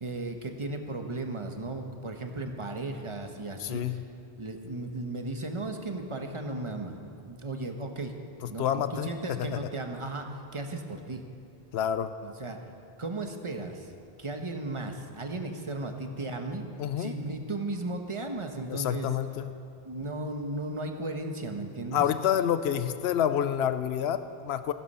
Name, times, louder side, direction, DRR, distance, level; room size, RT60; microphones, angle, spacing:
voice 1, 0.0-4.0 4.4-8.1 8.4-11.2 12.2-12.6 13.0-13.9 14.2-16.7 17.0-19.1 19.8-22.0, right 2 dB, 30° right, 4 dB, 1.2 m, -35 dB
voice 2, 3.6-4.0 8.6-9.6 11.7-12.1 16.8-17.1 18.7-19.5 21.9-24.7, left 9 dB, 80° left, 11 dB, 0.9 m, -28 dB
15.0 x 13.0 x 5.5 m, 2.4 s
omnidirectional pair, 1.1 m